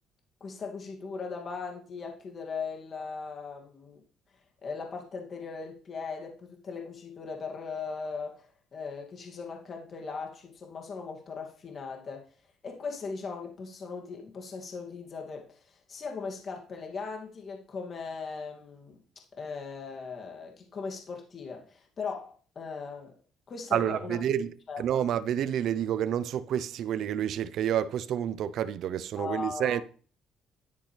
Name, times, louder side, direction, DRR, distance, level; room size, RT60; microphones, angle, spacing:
voice 1, 0.4-4.0 4.6-12.3 12.6-19.0 19.4-23.1 23.5-24.2 24.7-25.1 29.2-29.8, left 5 dB, 40° left, 2.5 m, -39 dB
voice 2, 23.7-24.5 24.8-29.8, right 10 dB, 65° right, 0.7 m, -29 dB
11.5 x 10.0 x 3.4 m
cardioid pair, 110°, 0 cm